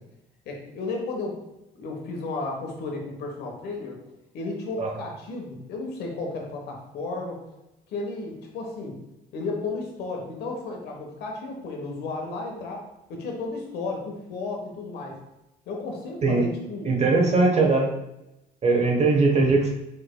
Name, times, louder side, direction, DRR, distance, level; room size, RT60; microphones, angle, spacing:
voice 1, 0.4-1.4 1.8-4.0 4.3-7.4 7.9-9.0 9.3-12.8 13.1-15.2 15.7-16.9 17.2-17.7, left 3 dB, 75° left, 1 dB, 1.2 m, -33 dB
voice 2, 16.8-17.9 18.6-19.7, right 3 dB, 40° right, 0 dB, 1.0 m, -20 dB
4.9 x 4.5 x 2.3 m, 0.91 s
cardioid pair, 110°, 17 cm